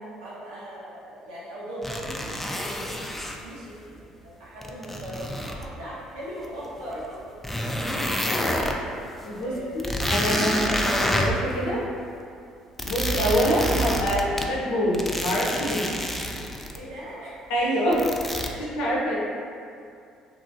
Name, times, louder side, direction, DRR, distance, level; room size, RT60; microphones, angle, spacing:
voice 1, 0.2-7.3 8.5-9.0 9.4-10.0 12.8-13.0 16.7-17.4 18.5-18.6, equal, 85° right, -8 dB, 0.8 m, -39 dB
sound 1, 1.8-3.4 4.6-5.7 6.4-6.5 7.0-7.1 7.4-8.8 9.2-9.3 9.6-11.5 12.8-14.5 14.9-16.8 17.9-18.5, equal, 10° left, 0.3 m, -28 dB
voice 2, 9.2-11.9 12.9-15.9 17.5-18.0 18.6-19.2, equal, 80° left, -5 dB, 0.6 m, -25 dB
2.9 x 2.6 x 2.5 m, 2.4 s
hypercardioid pair, 60°, 2 cm